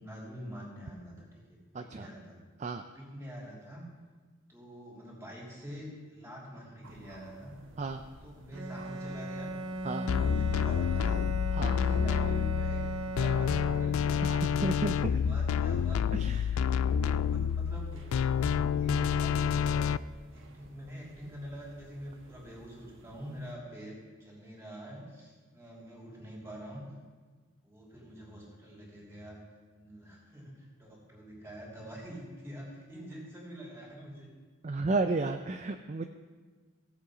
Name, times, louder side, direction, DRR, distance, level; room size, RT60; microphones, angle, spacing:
voice 1, 0.0-2.4 2.9-3.8 4.5-7.5 8.2-9.5 10.1-11.2 11.7-14.6 14.9-16.4 16.7-19.8 20.3-26.9 27.6-29.4 29.8-34.3, equal, 15° right, -4 dB, 3.0 m, -45 dB
voice 2, 1.7-2.1 2.6-2.8 7.8-8.0 9.8-10.1 11.5-11.8 14.2-14.9 16.2-16.6 34.6-36.1, right 3 dB, 35° right, 7 dB, 0.4 m, -32 dB
sound 1, 6.8-23.5, right 1 dB, 65° right, 1.2 m, -57 dB
Bowed string instrument, 8.5-14.3, right 1 dB, 85° right, 0.8 m, -38 dB
sound 2, 10.1-20.0, left 7 dB, 80° left, 0.3 m, -28 dB
16.5 x 7.3 x 5.0 m, 1.4 s
head